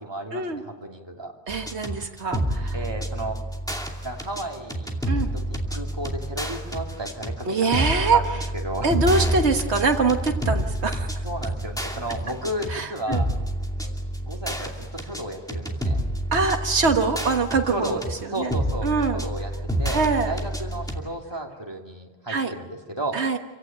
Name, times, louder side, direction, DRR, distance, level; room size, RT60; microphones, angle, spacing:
voice 1, 0.0-1.3 2.7-3.4 4.0-5.0 5.3-8.9 11.2-13.3 13.7-13.9 14.2-16.0 17.7-18.0 18.3-19.5 19.8-20.0 20.3-23.2, right 1 dB, 25° right, 1 dB, 2.9 m, -33 dB
sound 1, 1.5-21.0, right 1 dB, 5° left, 2.6 m, -29 dB
voice 2, 1.5-2.8 5.1-5.3 7.5-8.2 8.8-11.1 12.7-13.2 16.3-18.0 18.4-18.5 18.8-19.2 19.9-20.3 22.3-22.5 23.1-23.4, right 4 dB, 85° right, 5 dB, 1.7 m, -23 dB
28.0 x 17.0 x 9.1 m, 1.3 s
omnidirectional pair, 1.1 m